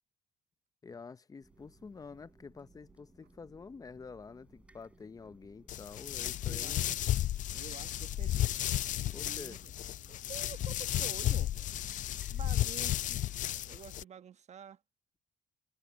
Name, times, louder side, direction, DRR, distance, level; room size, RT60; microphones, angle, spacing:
voice 1, 0.8-7.0 9.1-9.6, left 4 dB, 20° left, 0.7 m, -48 dB
sound 1, 1.4-13.6, right 1 dB, 5° right, 5.0 m, -62 dB
sound 2, 1.5-7.5, right 18 dB, 85° right, 5.6 m, -70 dB
sound 3, 5.7-14.0, left 13 dB, 50° left, 0.4 m, -33 dB
voice 2, 6.5-9.7 10.1-11.7 12.3-13.3 13.6-14.8, right 8 dB, 40° right, 1.2 m, -50 dB
cardioid pair, 110°, 17 cm